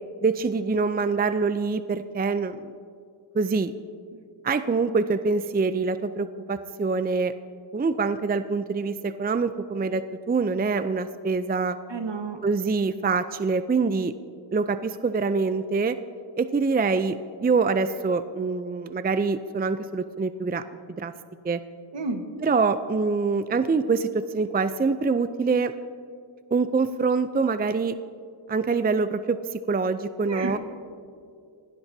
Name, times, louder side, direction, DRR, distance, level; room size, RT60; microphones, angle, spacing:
voice 1, 0.2-2.7 3.3-3.7 4.4-7.3 7.7-11.8 12.4-14.1 14.5-16.0 16.4-20.6 20.9-21.1 21.4-21.6 22.4-25.7 26.5-28.0 28.5-30.6, right 4 dB, 20° right, 12 dB, 0.5 m, -25 dB
voice 2, 11.9-12.4 21.9-22.3 30.2-30.6, right 3 dB, 60° right, 6 dB, 1.6 m, -31 dB
22.5 x 17.0 x 2.8 m, 2.4 s
cardioid pair, 55°, 49 cm